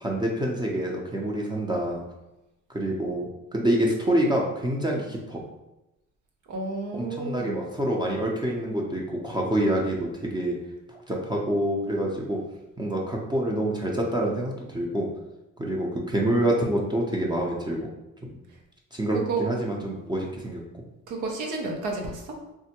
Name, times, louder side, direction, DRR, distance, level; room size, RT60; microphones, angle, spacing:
voice 1, 0.0-2.0 2.7-5.4 6.9-10.5 10.9-12.4 12.8-15.1 15.6-17.8 18.2-18.4 18.9-20.6, right 1 dB, 15° right, -2 dB, 0.5 m, -27 dB
voice 2, 6.5-7.6 19.1-19.4 21.1-22.4, right 3 dB, 90° right, 1 dB, 0.7 m, -31 dB
3.3 x 2.1 x 2.8 m, 0.95 s
cardioid pair, 90°, 30 cm